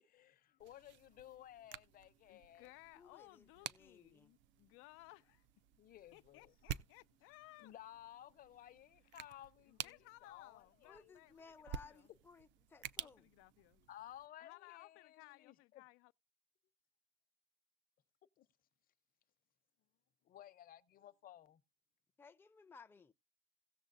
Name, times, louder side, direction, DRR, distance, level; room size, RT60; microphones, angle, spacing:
voice 1, 0.0-2.7 5.8-6.7 7.6-11.1 13.7-15.8 18.4-18.5 20.2-21.6, left 12 dB, 45° left, 0.8 m, -57 dB
sound 1, 0.6-14.3, right 10 dB, 65° right, 0.6 m, -52 dB
voice 2, 2.3-5.5 6.1-7.7 9.7-12.1 13.0-13.8 14.4-16.1, left 22 dB, 85° left, 0.4 m, -60 dB
voice 3, 2.9-4.3 10.8-13.3 22.2-23.1, left 5 dB, 10° left, 0.5 m, -60 dB
17.0 x 7.1 x 2.6 m
cardioid pair, 150°, 21 cm